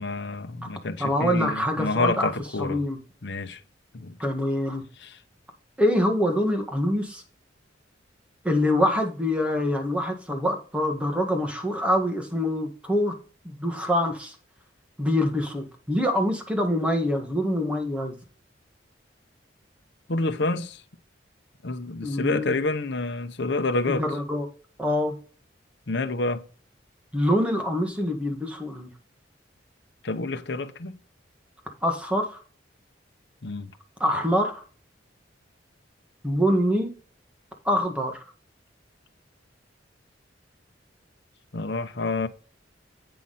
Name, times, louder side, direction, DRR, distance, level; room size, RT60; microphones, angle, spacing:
voice 1, 0.0-2.8 3.2-3.6 3.9-4.2 5.0-5.2 20.1-20.8 21.6-24.0 25.9-26.4 30.0-31.0 33.4-33.7 41.5-42.3, left 2 dB, 70° left, 0.9 m, -28 dB
voice 2, 1.0-2.3 2.6-3.0 4.2-4.8 5.8-7.2 8.4-13.1 13.4-14.3 15.0-18.1 22.0-22.5 23.9-24.4 24.8-25.1 27.1-28.9 31.8-32.4 34.0-34.6 36.2-36.9 37.6-38.2, left 1 dB, 5° right, 1.7 m, -25 dB
8.6 x 5.9 x 4.1 m
head